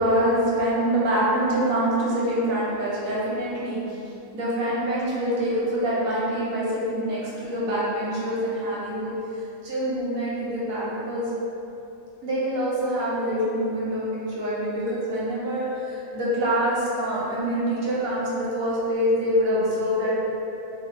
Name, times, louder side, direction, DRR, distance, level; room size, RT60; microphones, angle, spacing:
voice 1, 0.0-3.8 4.3-9.1 9.6-11.3 12.2-20.1, equal, 90° right, -7 dB, 1.2 m, -25 dB
4.2 x 2.0 x 3.1 m, 2.9 s
omnidirectional pair, 1.4 m